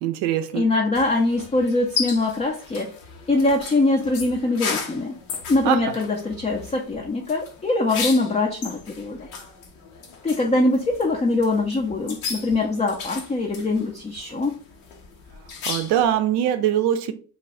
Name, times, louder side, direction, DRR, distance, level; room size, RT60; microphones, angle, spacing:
voice 1, 0.0-0.7 5.6-5.8 15.7-17.1, right 11 dB, 70° right, 0.5 m, -22 dB
voice 2, 0.5-2.9 3.3-5.2 5.5-9.3 10.2-14.5, left 2 dB, 15° left, 0.4 m, -23 dB
sound 1, 0.9-16.1, left 5 dB, 80° left, 0.8 m, -35 dB
2.2 x 2.0 x 3.5 m
hypercardioid pair, 50°, 43 cm